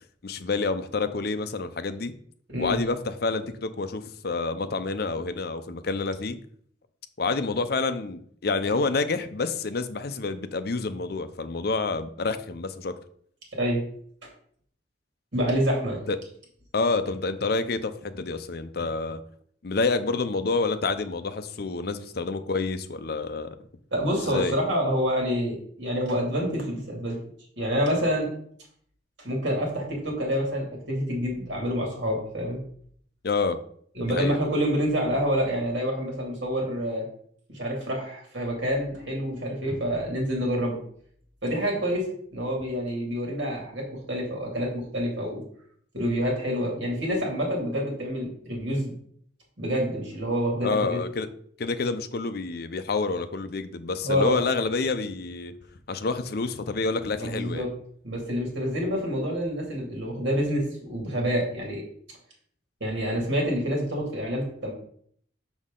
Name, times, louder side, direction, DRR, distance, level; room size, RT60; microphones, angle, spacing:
voice 1, 0.2-2.1 2.6-6.4 7.2-13.0 16.1-16.2 16.7-19.2 19.6-23.5 24.2-24.6 33.2-33.6 34.1-34.4 50.6-51.3 51.6-55.5 55.9-57.7, left 3 dB, 55° left, 10 dB, 0.6 m, -28 dB
voice 2, 15.3-16.0 23.9-27.2 27.6-28.3 29.2-32.6 33.9-37.0 37.5-40.8 41.4-42.0 42.3-45.4 45.9-48.9 49.6-51.0 54.0-54.4 57.2-57.7 58.0-61.8 62.8-64.7, equal, 75° right, -1 dB, 2.5 m, -27 dB
6.2 x 6.2 x 3.8 m, 0.62 s
head